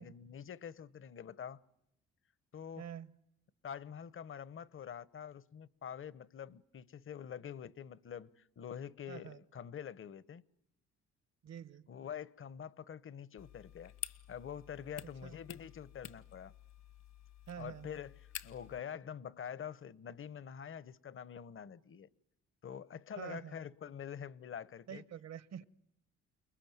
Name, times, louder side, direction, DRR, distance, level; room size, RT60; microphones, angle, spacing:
voice 1, 0.0-1.6 2.5-2.8 3.6-10.4 11.9-13.9 14.3-16.5 17.6-22.1 22.6-25.0, left 8 dB, 45° left, 1.0 m, -46 dB
voice 2, 2.8-3.2 9.1-9.4 11.4-11.8 15.2-15.4 17.5-17.9 23.2-23.6 24.9-25.6, right 9 dB, 60° right, 1.2 m, -47 dB
sound 1, 13.4-18.8, left 10 dB, 65° left, 1.5 m, -50 dB
29.5 x 21.0 x 9.3 m
cardioid pair, 90°, 30 cm